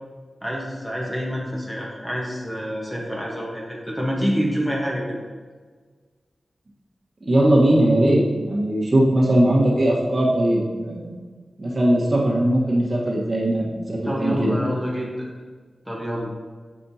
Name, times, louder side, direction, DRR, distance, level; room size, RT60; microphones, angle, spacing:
voice 1, 0.4-5.2 14.0-15.3 15.9-16.3, equal, 5° left, -3 dB, 1.1 m, -27 dB
voice 2, 7.2-11.1 11.6-14.6, right 1 dB, 40° right, -4 dB, 1.3 m, -19 dB
7.5 x 5.3 x 2.8 m, 1.5 s
wide cardioid pair, 110°, 0 cm